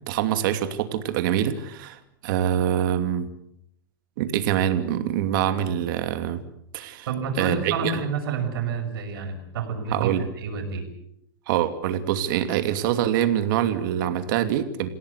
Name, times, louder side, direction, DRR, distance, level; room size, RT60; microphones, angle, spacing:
voice 1, 0.1-3.3 4.2-6.4 6.7-7.1 7.4-7.9 9.9-10.2 11.5-14.9, right 10 dB, 65° right, 8 dB, 2.7 m, -25 dB
voice 2, 7.1-10.9, right 5 dB, 85° right, 5 dB, 6.1 m, -29 dB
27.5 x 17.0 x 8.3 m, 0.75 s
supercardioid pair, 140°, 12 cm